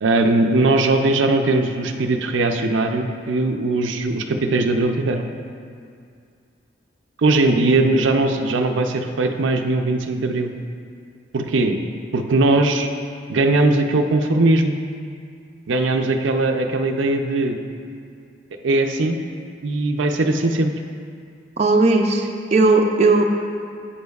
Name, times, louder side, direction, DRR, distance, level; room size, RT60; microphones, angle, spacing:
voice 1, 0.0-5.3 7.2-10.5 11.3-11.8 12.1-12.9 13.3-14.8 15.7-17.6 18.6-19.2 19.6-20.7, right 2 dB, 85° right, 5 dB, 0.5 m, -19 dB
voice 2, 21.6-23.2, right 3 dB, 35° right, 2 dB, 0.5 m, -16 dB
10.5 x 8.5 x 2.4 m, 2.3 s
head